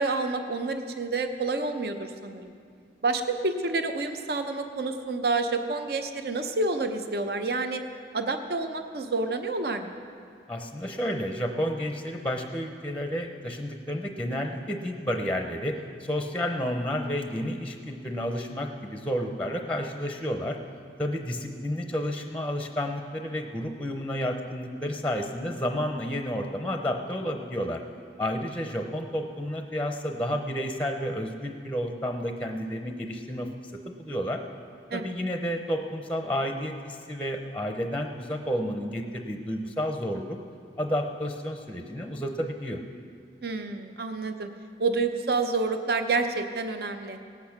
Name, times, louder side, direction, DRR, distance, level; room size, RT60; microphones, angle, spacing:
voice 1, 0.0-2.5 3.0-7.8 8.1-10.0 34.9-35.1 43.4-44.5 44.8-47.2, right 3 dB, 60° right, 7 dB, 0.8 m, -28 dB
voice 2, 10.5-20.6 21.0-27.8 28.2-33.5 33.9-34.4 34.9-40.4 40.8-42.8, equal, 5° left, 4 dB, 0.7 m, -31 dB
18.0 x 8.5 x 5.9 m, 2.3 s
head